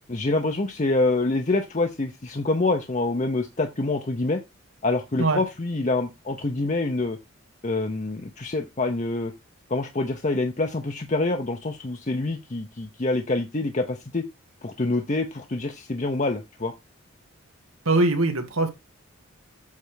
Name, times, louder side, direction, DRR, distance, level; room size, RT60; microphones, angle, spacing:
voice 1, 0.1-4.4 4.8-7.2 7.6-9.3 9.7-14.3 14.6-16.7, left 2 dB, 35° left, 0.7 m, -26 dB
voice 2, 17.9-18.7, right 2 dB, 85° right, 1.8 m, -21 dB
8.3 x 3.4 x 6.3 m
head